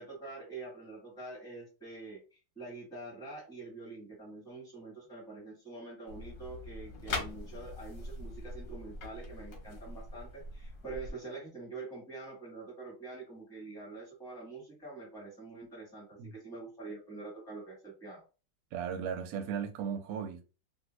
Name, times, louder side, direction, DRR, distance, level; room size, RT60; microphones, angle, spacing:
voice 1, 0.0-2.2 2.5-18.2, right 3 dB, ahead, 1.1 m, -45 dB
sound 1, 6.1-11.1, left 2 dB, 55° left, 1.1 m, -42 dB
voice 2, 18.7-20.4, right 7 dB, 65° right, 0.9 m, -36 dB
2.7 x 2.7 x 3.0 m
omnidirectional pair, 2.0 m